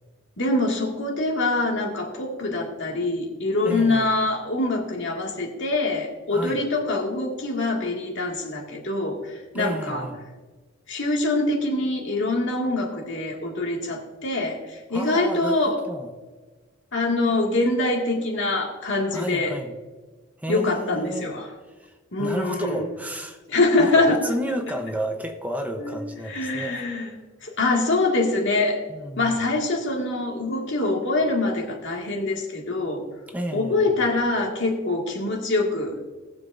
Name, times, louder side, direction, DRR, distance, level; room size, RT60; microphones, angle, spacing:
voice 1, 0.4-10.0 10.9-15.8 16.9-19.5 20.5-21.5 22.1-22.8 23.5-24.2 25.8-25.9 26.3-27.1 27.4-28.8 29.2-33.0 33.5-36.0, left 2 dB, 65° left, 0 dB, 2.0 m, -24 dB
voice 2, 3.6-4.1 6.3-6.6 9.5-10.2 14.9-16.1 19.1-19.7 20.4-21.3 21.8-21.9 22.2-23.4 23.8-26.8 28.9-29.5 33.3-34.0, equal, 10° right, 4 dB, 0.8 m, -31 dB
19.5 x 7.4 x 2.6 m, 1.3 s
head